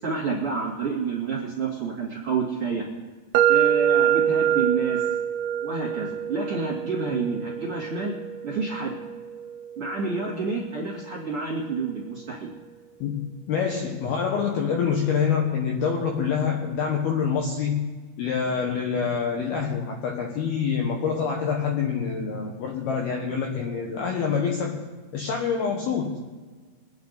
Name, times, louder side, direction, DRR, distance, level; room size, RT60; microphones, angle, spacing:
voice 1, 0.0-2.8 3.5-5.0 5.6-8.1 8.4-9.0 9.8-12.5, right 4 dB, 35° right, -3 dB, 2.4 m, -29 dB
sound 1, 3.4-11.2, right 10 dB, 85° right, 3.2 m, -26 dB
voice 2, 13.0-17.9 18.2-24.8 25.1-26.2, left 6 dB, 70° left, 1 dB, 2.5 m, -26 dB
25.5 x 9.9 x 4.0 m, 1.4 s
omnidirectional pair, 6.0 m